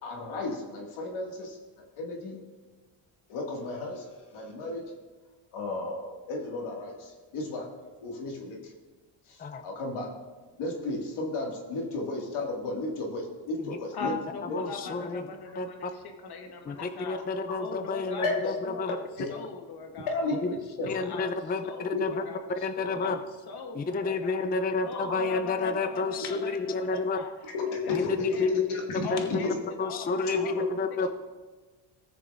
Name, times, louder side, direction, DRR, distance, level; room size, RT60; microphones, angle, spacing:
voice 1, 0.0-2.4 3.3-4.8 5.5-7.7 8.0-8.7 9.3-10.1 10.6-14.1 14.5-14.6 18.2-18.4 19.2-19.3 20.1-20.9 21.9-22.1 27.5-29.1 29.4-29.5, left 3 dB, 80° left, -1 dB, 2.1 m, -33 dB
voice 2, 13.9-17.2 17.6-18.3 18.6-19.0 19.3-20.6 20.8-21.3 21.6-24.5 24.8-27.3 27.7-30.6, left 5 dB, 50° left, 4 dB, 1.2 m, -41 dB
voice 3, 14.5-15.2 15.6-15.9 16.7-19.0 20.4-20.5 20.9-22.1 22.6-23.2 23.7-27.2 27.9-28.7 29.1-29.2 29.8-31.1, left 3 dB, 20° left, 8 dB, 0.5 m, -30 dB
18.0 x 6.8 x 2.5 m, 1.3 s
cardioid pair, 105°, 49 cm